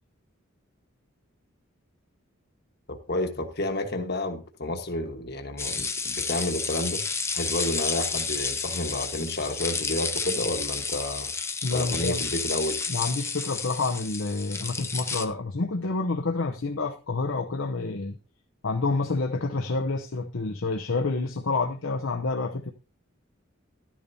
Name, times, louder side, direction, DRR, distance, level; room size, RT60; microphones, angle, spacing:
voice 1, 2.9-7.0 7.3-11.3 11.7-12.8, left 1 dB, 50° left, 1.3 m, -30 dB
sound 1, 5.6-15.2, left 4 dB, 15° left, 0.6 m, -31 dB
voice 2, 11.6-12.2 12.9-18.2 18.6-22.7, left 3 dB, 75° left, 0.8 m, -28 dB
12.0 x 10.0 x 2.7 m
head